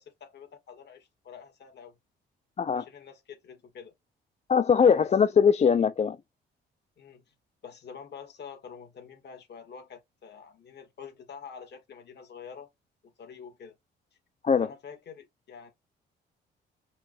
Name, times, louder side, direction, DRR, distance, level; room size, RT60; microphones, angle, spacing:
voice 1, 0.0-2.0 2.7-3.9 4.8-5.1 7.0-7.3 7.6-12.7 13.0-13.7 14.6-15.7, left 7 dB, 60° left, 2.4 m, -46 dB
voice 2, 4.5-6.2 14.4-14.7, left 6 dB, 35° left, 0.5 m, -21 dB
5.5 x 2.7 x 3.4 m
cardioid pair, 90°, 20 cm